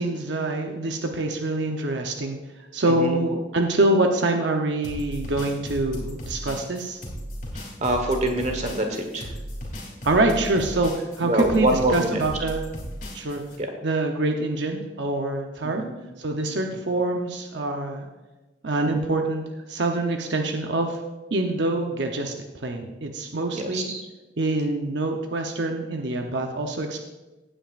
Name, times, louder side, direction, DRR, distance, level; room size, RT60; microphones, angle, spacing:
voice 1, 0.0-2.4 2.7-7.0 10.0-12.7 13.1-13.4 13.8-15.8 16.2-18.1 18.6-21.0 21.3-22.3 22.6-23.9 24.4-27.0, right 2 dB, 70° right, 3 dB, 0.8 m, -25 dB
voice 2, 2.9-3.2 7.8-9.3 11.2-12.2 13.6-13.7 15.6-15.9 23.5-24.0, right 1 dB, 35° right, 4 dB, 1.3 m, -25 dB
sound 1, 4.8-13.6, equal, 45° left, 3.0 m, -35 dB
16.0 x 8.9 x 2.5 m, 1.1 s
head